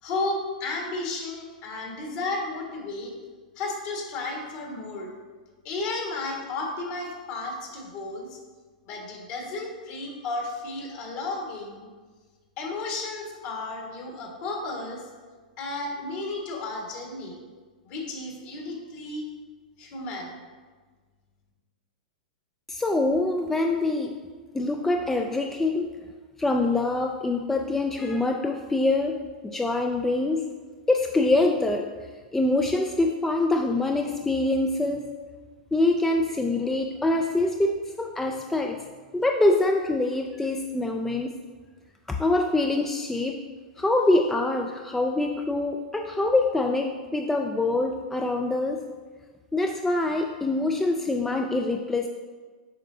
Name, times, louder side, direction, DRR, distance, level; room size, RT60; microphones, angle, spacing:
voice 1, 0.0-3.1 3.5-5.1 5.6-8.4 8.8-11.9 12.6-15.0 15.6-17.4 17.8-19.2 19.8-20.3, left 2 dB, 45° left, 0 dB, 1.6 m, -33 dB
voice 2, 22.7-24.2 24.5-25.9 26.4-30.5 30.9-31.9 32.3-35.1 35.7-38.8 39.1-41.3 42.1-43.4 43.8-48.8 49.5-52.1, left 2 dB, 5° left, 3 dB, 0.3 m, -25 dB
7.5 x 5.3 x 2.7 m, 1.4 s
hypercardioid pair, 110°, 5 cm